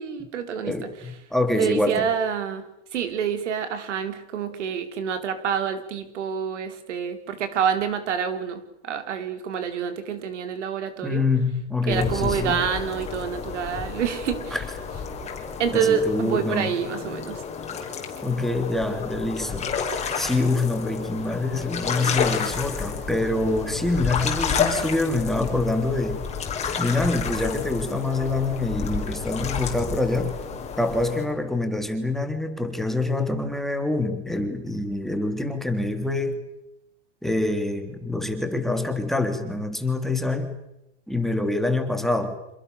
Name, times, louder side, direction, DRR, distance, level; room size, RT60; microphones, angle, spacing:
voice 1, 0.0-0.7 1.5-2.6 2.9-11.2 11.9-14.6 15.6-17.4, right 7 dB, 85° right, 8 dB, 5.0 m, -27 dB
voice 2, 0.6-2.1 11.0-12.6 14.5-14.6 15.7-16.8 18.2-19.7 20.1-26.2 26.8-30.4 30.8-36.4 37.2-40.6 41.1-42.4, left 2 dB, ahead, 6 dB, 3.4 m, -25 dB
sound 1, 11.9-31.3, left 6 dB, 20° left, 6.1 m, -30 dB
29.0 x 27.5 x 6.9 m, 0.84 s
supercardioid pair, 140°, 35 cm